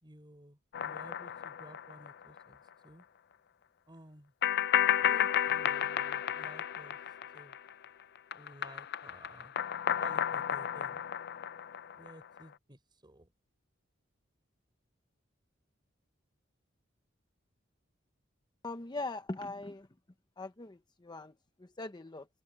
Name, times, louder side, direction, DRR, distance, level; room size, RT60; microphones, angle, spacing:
voice 1, 0.0-3.1 3.9-4.3 5.0-7.0 7.3-7.6 8.3-9.5 10.0-11.0 11.9-13.3, right 1 dB, 25° right, 5.2 m, -54 dB
sound 1, 0.7-2.4 2.7-2.8 4.4-7.9 8.2-12.4, left 10 dB, 55° left, 0.5 m, -32 dB
voice 2, 18.6-19.9 20.4-22.3, left 2 dB, 20° left, 0.7 m, -41 dB
open air
head